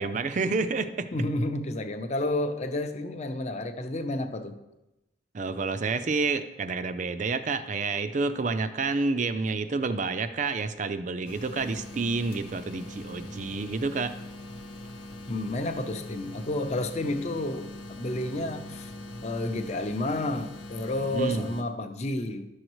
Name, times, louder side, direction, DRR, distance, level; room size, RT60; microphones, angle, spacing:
voice 1, 0.0-1.1 5.3-14.1 21.1-21.5, right 4 dB, 40° right, 11 dB, 0.4 m, -29 dB
voice 2, 1.1-4.6 15.3-18.9 19.2-22.5, left 1 dB, 35° left, 7 dB, 0.6 m, -31 dB
sound 1, 11.2-21.6, left 1 dB, 75° left, 0.8 m, -42 dB
11.5 x 6.4 x 3.1 m, 0.95 s
head